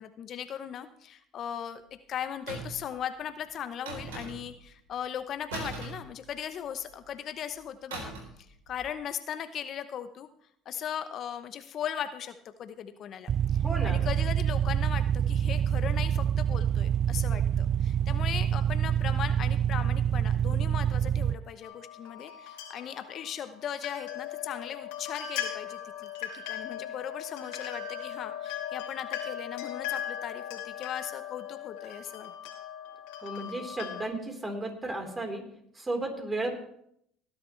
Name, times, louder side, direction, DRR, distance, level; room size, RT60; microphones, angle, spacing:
voice 1, 0.0-1.8 2.1-10.3 10.7-13.3 13.8-32.3, left 9 dB, 50° left, 10 dB, 0.8 m, -38 dB
sound 1, 2.5-2.9 3.9-4.6 5.5-6.7 7.9-8.4 8.7-8.9, right 3 dB, 90° right, 3.5 m, -39 dB
sound 2, 13.3-21.3, right 9 dB, 45° right, 0.4 m, -26 dB
voice 2, 13.6-14.0 33.2-35.4 35.7-36.6, right 2 dB, 20° right, 3 dB, 4.0 m, -34 dB
sound 3, 21.6-34.0, left 10 dB, 75° left, 2.8 m, -39 dB
19.0 x 10.5 x 3.3 m, 0.70 s
hypercardioid pair, 75°, 0 cm